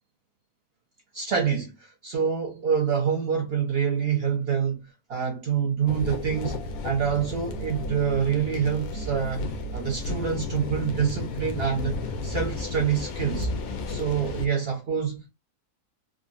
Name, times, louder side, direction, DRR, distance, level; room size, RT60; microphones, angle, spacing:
voice 1, 1.1-9.4 9.7-13.5 13.9-15.3, right 7 dB, 55° right, 0.7 m, -26 dB
sound 1, 5.9-14.5, left 2 dB, 75° left, 1.0 m, -32 dB
3.6 x 2.0 x 2.4 m
omnidirectional pair, 1.7 m